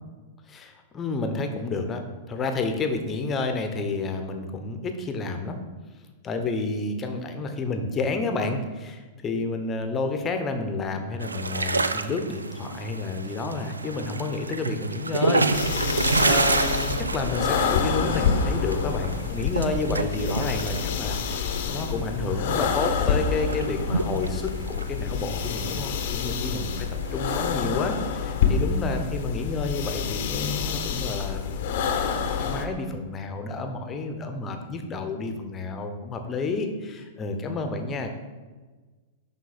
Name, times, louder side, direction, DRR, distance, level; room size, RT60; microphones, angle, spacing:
voice 1, 0.5-5.6 6.2-15.9 16.2-26.9 27.1-38.1, left 3 dB, 20° left, 5 dB, 1.0 m, -30 dB
sound 1, 11.2-22.4 22.7-22.8 23.0-24.9 25.2-27.5, right 3 dB, 80° right, 0.4 m, -29 dB
sound 2, 15.5-32.7, left 6 dB, 50° left, 0.9 m, -28 dB
11.0 x 3.8 x 4.4 m, 1.3 s
figure-of-eight pair, 100°, 0 cm